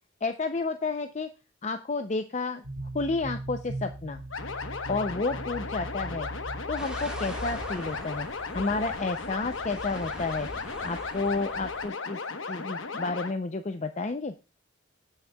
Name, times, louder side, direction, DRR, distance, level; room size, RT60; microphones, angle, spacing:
voice 1, 0.2-1.3 1.6-2.6 2.9-4.2 4.9-6.3 6.7-8.3 8.5-10.5 10.8-12.2 12.5-14.3, left 3 dB, 35° left, 8 dB, 0.5 m, -31 dB
sound 1, 2.6-8.2, right 1 dB, 65° right, 1.8 m, -39 dB
sound 2, 4.3-13.3, left 4 dB, 85° left, 1.1 m, -36 dB
sound 3, 6.8-11.9, equal, 5° right, 1.6 m, -43 dB
19.0 x 6.4 x 2.3 m, 0.29 s
head